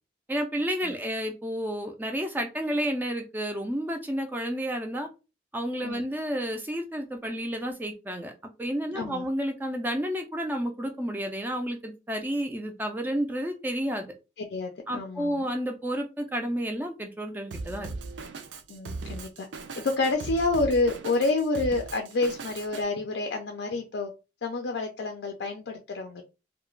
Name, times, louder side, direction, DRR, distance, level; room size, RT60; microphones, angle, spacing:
voice 1, 0.3-5.1 5.5-8.3 8.6-14.1 14.9-17.9, equal, 10° right, 0.3 m, -31 dB
voice 2, 8.9-9.3 14.4-15.5 18.7-19.5 19.8-24.1 24.4-26.2, left 3 dB, 70° left, 0.4 m, -28 dB
Drum kit, 17.5-22.8, right 3 dB, 80° right, 0.4 m, -38 dB
2.3 x 2.1 x 3.0 m
head